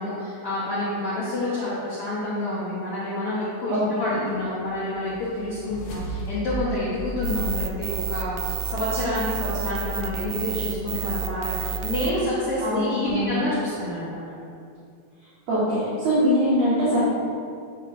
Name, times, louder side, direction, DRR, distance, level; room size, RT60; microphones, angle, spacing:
voice 1, 0.0-14.2, left 1 dB, 80° left, -9 dB, 1.3 m, -28 dB
voice 2, 3.7-4.2 12.6-13.4 15.5-17.1, equal, 55° right, -11 dB, 2.4 m, -23 dB
sound 1, 4.4-8.6, equal, 65° left, 2.0 m, -35 dB
sound 2, 7.2-12.1, right 7 dB, 85° right, 1.8 m, -30 dB
8.0 x 6.3 x 2.5 m, 2.3 s
omnidirectional pair, 4.2 m